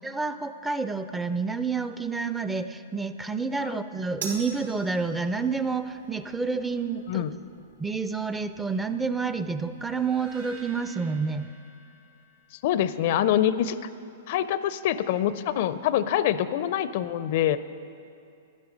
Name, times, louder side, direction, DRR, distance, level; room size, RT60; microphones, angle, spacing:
voice 1, 0.0-7.3 7.8-11.5, right 4 dB, 10° right, 11 dB, 0.4 m, -29 dB
sound 1, 4.2-10.8, right 4 dB, 80° right, 2.4 m, -45 dB
sound 2, 9.8-13.0, right 2 dB, 60° right, 2.5 m, -50 dB
voice 2, 12.6-13.8 14.3-17.6, left 11 dB, 55° left, 14 dB, 0.4 m, -25 dB
11.5 x 10.5 x 5.2 m, 2.7 s
hypercardioid pair, 130°, 0 cm